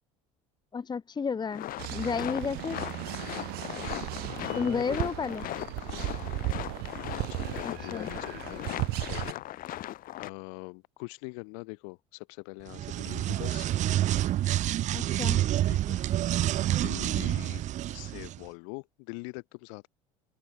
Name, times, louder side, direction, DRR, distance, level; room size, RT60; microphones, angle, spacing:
voice 1, 0.7-1.7 1.9-2.8 4.6-5.4 7.6-8.1 14.9-15.4, left 5 dB, 25° left, 1.1 m, -31 dB
sound 1, 1.5-10.3, left 14 dB, 60° left, 5.8 m, -38 dB
sound 2, 1.8-9.3, right 23 dB, 70° right, 4.1 m, -36 dB
voice 2, 4.4-5.1 5.8-6.4 7.0-9.4 9.8-13.7 15.7-16.0 16.3-17.7 17.9-19.9, left 40 dB or more, 75° left, 6.4 m, -43 dB
sound 3, 12.7-18.4, right 13 dB, 45° right, 0.5 m, -28 dB
hypercardioid pair, 75°, 17 cm